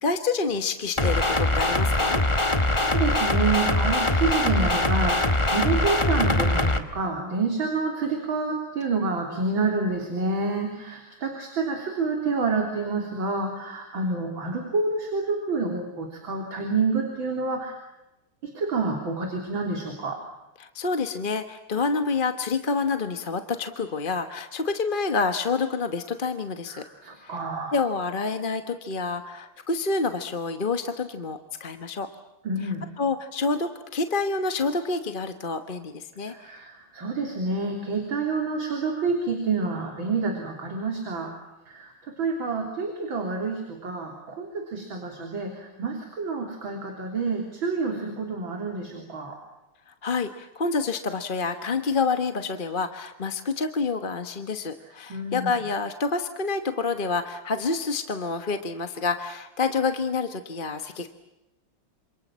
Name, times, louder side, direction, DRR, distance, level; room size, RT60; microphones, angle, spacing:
voice 1, 0.0-2.2 20.6-26.8 27.2-27.4 27.7-32.1 32.6-36.6 50.0-61.1, left 4 dB, 30° left, 7 dB, 1.1 m, -28 dB
sound 1, 1.0-6.8, left 2 dB, 15° left, 1.4 m, -22 dB
voice 2, 2.2-17.8 18.4-20.2 26.7-27.8 32.4-32.9 36.3-41.4 41.7-49.4 55.1-55.5, right 4 dB, 65° right, 2 dB, 4.2 m, -28 dB
28.0 x 27.0 x 7.4 m, 0.97 s
omnidirectional pair, 2.4 m